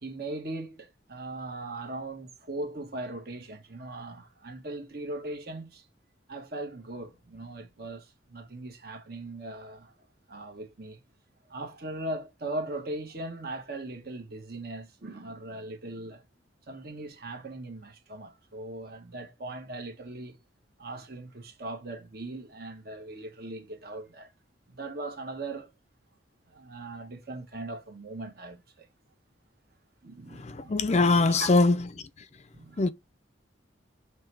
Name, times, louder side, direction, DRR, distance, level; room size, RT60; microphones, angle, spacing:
voice 1, 0.0-5.8 6.3-9.9 10.3-11.0 11.5-16.2 16.7-20.4 20.8-24.3 24.7-25.7 26.5-28.8 30.0-31.6 32.5-32.8, right 2 dB, 55° right, 1.4 m, -39 dB
voice 2, 30.3-31.9 32.8-32.9, left 3 dB, 35° left, 0.5 m, -23 dB
6.8 x 3.3 x 4.7 m
head